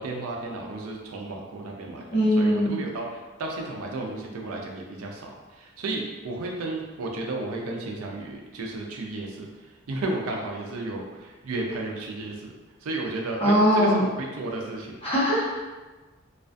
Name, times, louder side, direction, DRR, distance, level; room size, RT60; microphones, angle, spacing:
voice 1, 0.0-2.0 2.4-9.5 9.9-12.5 12.8-14.9, right 2 dB, 85° right, 0 dB, 0.4 m, -33 dB
voice 2, 2.1-2.7 13.4-14.0 15.0-15.5, equal, 30° left, -9 dB, 0.9 m, -20 dB
2.4 x 2.2 x 2.5 m, 1.2 s
head